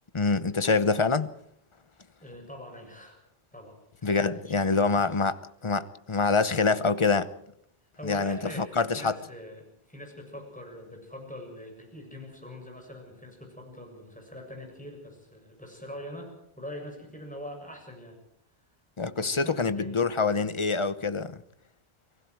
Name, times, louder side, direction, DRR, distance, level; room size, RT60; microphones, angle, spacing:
voice 1, 0.1-1.3 4.0-5.4 5.6-7.3 8.0-9.1 19.0-21.4, left 4 dB, 30° left, 0.9 m, -25 dB
voice 2, 2.2-3.2 3.5-5.1 7.9-18.2 19.2-20.3, left 1 dB, 5° left, 7.3 m, -44 dB
29.5 x 20.0 x 4.7 m
omnidirectional pair, 1.1 m